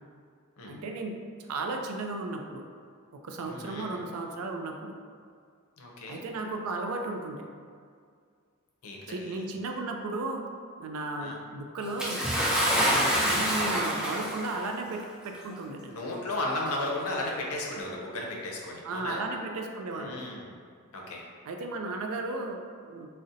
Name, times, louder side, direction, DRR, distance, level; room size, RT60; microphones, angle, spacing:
voice 1, 0.7-1.1 1.5-2.6 3.1-5.0 6.1-7.5 9.1-10.5 10.8-12.2 12.8-16.0 18.8-20.2 21.5-23.1, right 2 dB, 75° right, 3 dB, 0.4 m, -35 dB
voice 2, 3.4-4.0 5.8-6.2 8.8-9.5 11.2-11.4 15.9-19.2 19.9-20.5 20.9-21.2, left 2 dB, 75° left, -1 dB, 0.5 m, -35 dB
Bathtub (filling or washing) / Splash splatter, 12.0-14.6 15.5-15.6 16.6-16.7, equal, 5° right, 0.3 m, -26 dB
2.6 x 2.0 x 3.7 m, 2.1 s
head